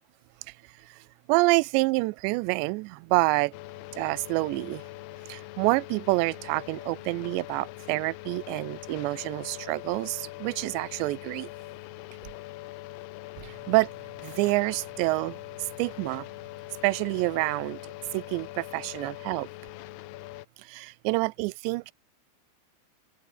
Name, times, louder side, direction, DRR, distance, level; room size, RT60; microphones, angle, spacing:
voice 1, 0.5-3.5 3.9-4.8 5.3-11.5 13.4-13.9 14.2-16.3 16.8-19.5 20.6-21.9, right 24 dB, 85° right, 2.8 m, -28 dB
sound 1, 3.5-20.5, left 18 dB, 80° left, 2.7 m, -42 dB
omnidirectional pair, 5.0 m